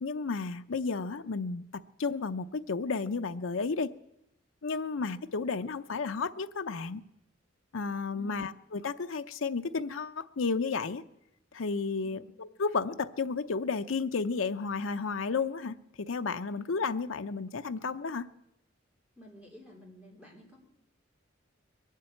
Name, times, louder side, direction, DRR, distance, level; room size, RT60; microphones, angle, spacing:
voice 1, 0.0-3.9 4.6-7.0 7.7-11.0 11.5-18.3, left 4 dB, 80° left, 8 dB, 0.6 m, -32 dB
voice 2, 19.2-20.6, equal, 5° right, -2 dB, 3.8 m, -51 dB
21.5 x 7.5 x 8.8 m, 0.84 s
head